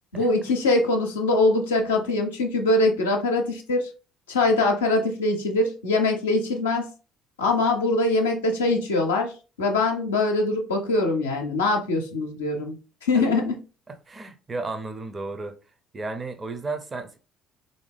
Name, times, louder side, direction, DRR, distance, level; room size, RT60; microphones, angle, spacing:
voice 1, 0.1-3.9 4.3-6.9 7.4-12.8 13.0-13.6, left 2 dB, 80° left, 0.5 m, -23 dB
voice 2, 14.1-15.6 15.9-17.2, right 3 dB, 30° right, 0.6 m, -33 dB
3.4 x 2.6 x 3.3 m
figure-of-eight pair, 55°, 0 cm